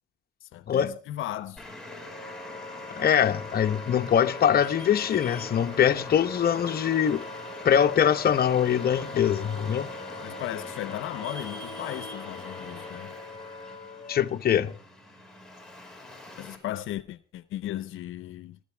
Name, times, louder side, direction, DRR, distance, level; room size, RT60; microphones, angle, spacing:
voice 1, 0.4-1.6 10.2-13.1 16.4-18.6, left 13 dB, 85° left, 0.8 m, -36 dB
Traffic noise roadway noise, 1.6-16.6, left 2 dB, 5° left, 5.1 m, -43 dB
Wind instrument woodwind instrument, 1.7-14.4, left 3 dB, 30° left, 3.2 m, -42 dB
voice 2, 3.0-7.2 7.6-9.9 14.1-14.7, left 9 dB, 50° left, 0.9 m, -23 dB
19.5 x 14.0 x 3.4 m
cardioid pair, 90°, 20 cm